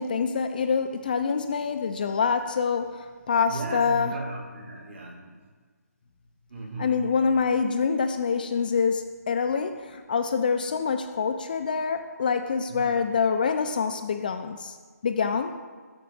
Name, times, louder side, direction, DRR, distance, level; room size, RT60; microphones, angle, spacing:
voice 1, 0.0-4.1 6.8-14.8 15.0-15.5, left 5 dB, 30° left, 7 dB, 0.3 m, -26 dB
voice 2, 3.5-5.5 6.5-7.2 12.7-12.9, right 3 dB, 50° right, -1 dB, 1.9 m, -37 dB
6.9 x 6.6 x 3.4 m, 1.5 s
figure-of-eight pair, 160°, 9 cm